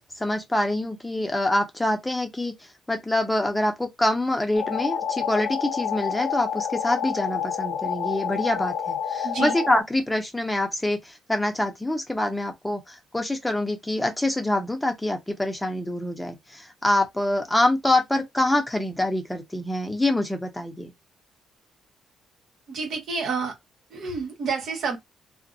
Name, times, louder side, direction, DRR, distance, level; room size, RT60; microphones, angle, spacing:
voice 1, 0.0-20.9, left 1 dB, 10° left, 0.7 m, -25 dB
sound 1, 4.6-9.8, left 8 dB, 80° left, 0.5 m, -29 dB
voice 2, 9.2-9.6 22.7-23.5 23.9-25.0, right 4 dB, 70° right, 1.2 m, -29 dB
2.5 x 2.1 x 2.6 m
cardioid pair, 90°, 0 cm